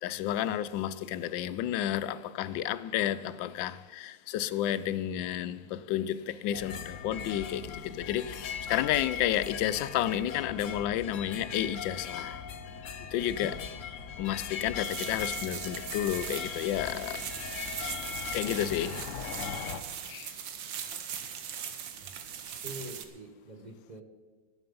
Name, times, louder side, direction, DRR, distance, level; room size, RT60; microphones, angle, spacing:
voice 1, 0.0-12.4 13.1-13.6 14.2-17.3 18.3-19.0 20.1-20.3, left 11 dB, 80° left, 1.3 m, -31 dB
sound 1, 6.5-19.8, left 7 dB, 55° left, 0.9 m, -39 dB
sound 2, 14.8-23.0, right 8 dB, 80° right, 1.7 m, -40 dB
voice 2, 22.6-24.0, right 1 dB, 30° right, 0.9 m, -44 dB
19.5 x 7.3 x 5.4 m
omnidirectional pair, 2.0 m